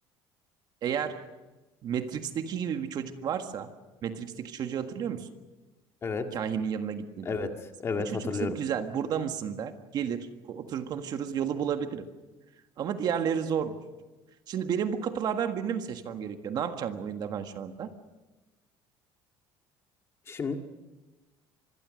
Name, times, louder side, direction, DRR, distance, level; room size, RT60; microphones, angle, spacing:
voice 1, 0.8-1.2 1.8-3.7 4.0-5.3 6.3-7.4 8.0-12.0 12.8-13.8 14.5-17.9, right 8 dB, 45° right, 7 dB, 1.6 m, -32 dB
voice 2, 7.8-8.6 20.3-20.6, left 4 dB, 30° left, 5 dB, 1.9 m, -31 dB
25.5 x 22.0 x 6.5 m, 1.2 s
cardioid pair, 140°, 9 cm